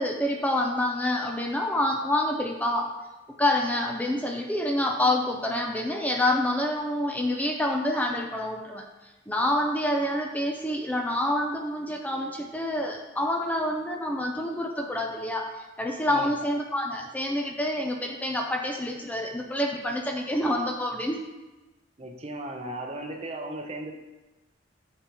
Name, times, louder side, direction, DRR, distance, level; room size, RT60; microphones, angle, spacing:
voice 1, 0.0-2.9 3.4-8.8 9.3-21.2, left 1 dB, 10° left, 2 dB, 0.5 m, -27 dB
voice 2, 22.0-23.9, right 1 dB, 30° right, 3 dB, 0.7 m, -36 dB
8.7 x 7.1 x 3.0 m, 1.1 s
head